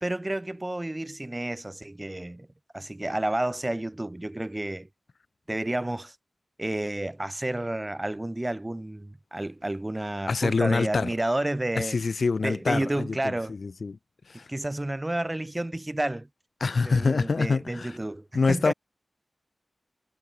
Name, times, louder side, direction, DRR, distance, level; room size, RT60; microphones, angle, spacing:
voice 1, 0.0-2.5 2.7-4.9 5.5-6.1 6.6-12.0 12.4-13.5 14.5-16.3 16.8-18.7, right 1 dB, 20° right, 1.3 m, -30 dB
voice 2, 10.3-11.1 11.8-13.3 13.6-14.0 14.3-14.4 16.6-17.9 18.3-18.7, left 4 dB, 60° left, 0.4 m, -25 dB
wide cardioid pair, 100°, 0 cm